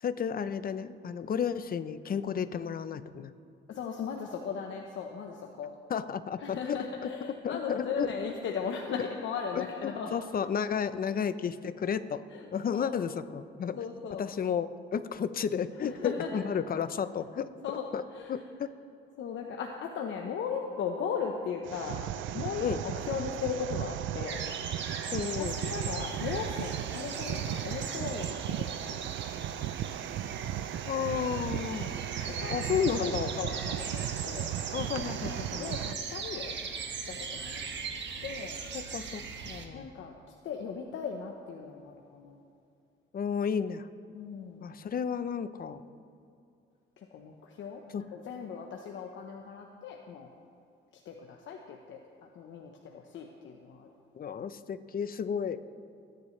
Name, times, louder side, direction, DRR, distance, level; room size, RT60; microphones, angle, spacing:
voice 1, 0.0-3.3 5.9-6.8 7.4-8.1 9.0-9.1 10.1-12.2 12.5-13.8 14.2-17.5 17.9-18.0 18.3-18.7 22.6-22.8 25.1-25.6 30.9-31.9 32.5-33.4 34.7-35.6 38.7-39.9 43.1-43.9 44.6-45.8 47.9-48.0 54.2-55.6, left 7 dB, 45° left, 12 dB, 0.8 m, -32 dB
voice 2, 3.7-5.7 6.4-10.1 11.8-11.9 12.3-12.9 13.7-14.3 15.8-16.4 17.6-18.4 19.2-22.0 22.3-24.4 25.4-29.1 32.3-34.5 35.0-36.6 37.1-37.7 38.2-38.5 39.7-40.1 40.4-42.4 44.1-44.7 47.0-50.3 51.0-53.9, left 6 dB, 70° left, 1 dB, 1.1 m, -38 dB
sound 1, 21.6-35.9, right 11 dB, 80° right, 0.5 m, -36 dB
sound 2, 24.3-39.7, right 5 dB, 65° right, 1.6 m, -40 dB
Bowed string instrument, 29.8-33.5, left 2 dB, 20° right, 2.0 m, -54 dB
28.5 x 10.5 x 3.3 m, 2.6 s
cardioid pair, 90°, 20 cm